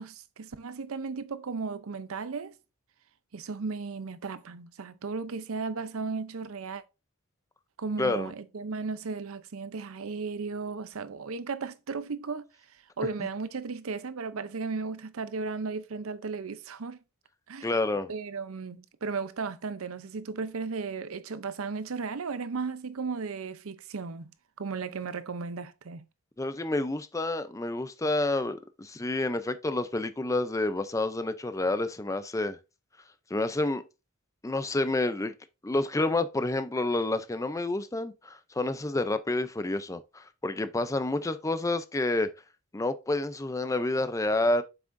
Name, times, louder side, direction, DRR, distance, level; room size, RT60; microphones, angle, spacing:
voice 1, 0.0-2.6 3.3-6.8 7.8-12.5 13.0-17.0 17.5-17.7 18.1-24.3 24.6-26.0, right 4 dB, 70° right, 0.6 m, -35 dB
voice 2, 8.0-8.3 17.6-18.1 26.4-32.6 33.3-33.8 34.4-35.3 35.6-42.3 42.7-44.6, left 2 dB, 15° left, 0.5 m, -29 dB
7.5 x 6.0 x 2.6 m
head